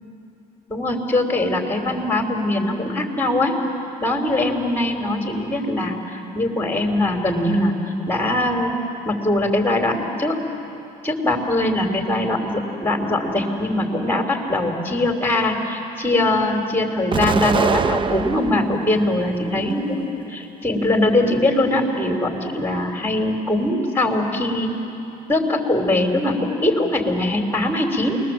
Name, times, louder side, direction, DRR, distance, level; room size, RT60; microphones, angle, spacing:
voice 1, 0.7-3.5 4.0-7.7 8.1-8.7 9.1-10.4 11.0-20.0 20.3-24.7 25.3-28.2, left 1 dB, 10° left, 2 dB, 3.7 m, -21 dB
Explosion, 17.1-18.8 19.3-20.2, right 5 dB, 30° right, 0.7 m, -23 dB
27.5 x 21.0 x 7.7 m, 2.9 s
cardioid pair, 110°, 17 cm